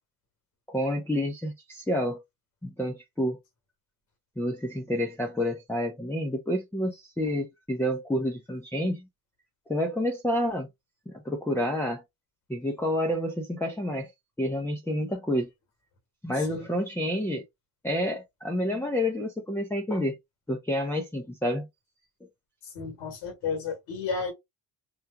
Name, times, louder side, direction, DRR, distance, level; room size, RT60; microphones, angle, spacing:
voice 1, 0.7-2.2 2.6-3.4 4.4-9.1 9.7-10.7 11.1-12.0 12.5-14.1 14.4-15.5 16.2-17.4 17.8-20.1 20.5-21.7, equal, 5° left, 0.7 m, -29 dB
voice 2, 16.3-16.7 22.7-24.3, left 5 dB, 90° left, 1.7 m, -32 dB
4.3 x 2.4 x 2.2 m
supercardioid pair, 65°, 46 cm